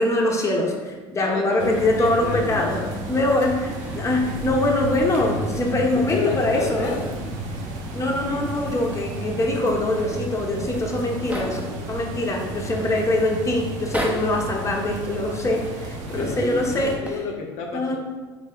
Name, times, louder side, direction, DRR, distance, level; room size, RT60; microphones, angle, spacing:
voice 1, 0.0-2.8 3.1-7.0 7.9-11.6 11.9-17.0 17.7-18.0, left 1 dB, 20° left, 0 dB, 0.9 m, -23 dB
voice 2, 1.2-2.9 5.9-7.0 8.3-8.5 16.1-18.0, left 4 dB, 65° left, 1 dB, 0.6 m, -31 dB
sound 1, 1.6-17.0, right 1 dB, 65° right, 0.8 m, -32 dB
sound 2, 3.4-5.9 6.4-7.4 7.7-7.8 8.2-9.8 10.5-10.6 10.8-11.8 12.5-13.0 13.7-14.5 15.5-16.2 16.8-17.1, equal, 10° right, 0.8 m, -37 dB
3.3 x 3.1 x 3.7 m, 1.3 s
supercardioid pair, 80°, 13 cm